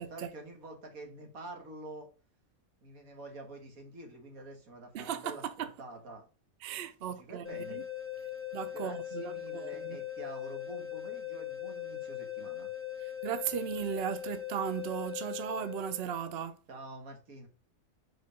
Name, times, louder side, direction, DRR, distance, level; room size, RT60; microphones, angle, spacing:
voice 1, 0.0-2.1 2.8-6.3 7.1-7.8 8.7-12.7 16.7-17.5, right 2 dB, 85° right, 2.1 m, -47 dB
voice 2, 4.9-5.7 6.6-7.8 8.5-10.0 13.0-16.6, right 9 dB, 55° right, 0.7 m, -37 dB
sound 1, 7.4-16.4, left 12 dB, 20° left, 0.4 m, -40 dB
4.8 x 4.6 x 5.0 m
omnidirectional pair, 1.4 m